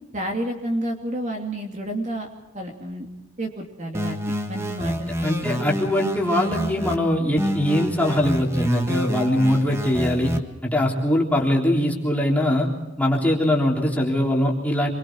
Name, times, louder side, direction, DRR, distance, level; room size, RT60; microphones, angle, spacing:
voice 1, 0.1-2.3 2.5-3.1 3.4-5.1, right 1 dB, 35° right, 2 dB, 2.7 m, -30 dB
sound 1, 3.9-7.0 7.4-10.4, equal, 10° right, 1.5 m, -28 dB
voice 2, 5.2-10.3 10.6-12.7 13.0-14.9, left 1 dB, 5° left, -2 dB, 3.6 m, -21 dB
27.0 x 23.0 x 4.7 m, 1.0 s
head